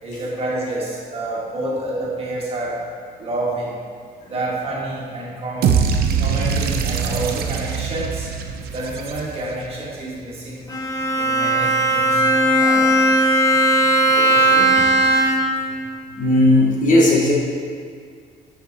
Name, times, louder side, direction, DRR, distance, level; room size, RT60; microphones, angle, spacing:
voice 1, 0.0-2.8 3.2-3.7 4.3-5.7 6.2-8.3 8.7-10.7 11.1-12.2 12.5-12.9 14.0-14.7, right 2 dB, 35° right, -4 dB, 1.6 m, -28 dB
sound 1, 5.6-9.7, right 6 dB, 65° right, 0.6 m, -22 dB
Bowed string instrument, 10.7-15.7, right 1 dB, 20° left, 0.7 m, -17 dB
voice 2, 16.2-17.3, left 1 dB, 50° left, -2 dB, 1.0 m, -15 dB
8.1 x 5.7 x 2.7 m, 2.1 s
cardioid pair, 110°, 17 cm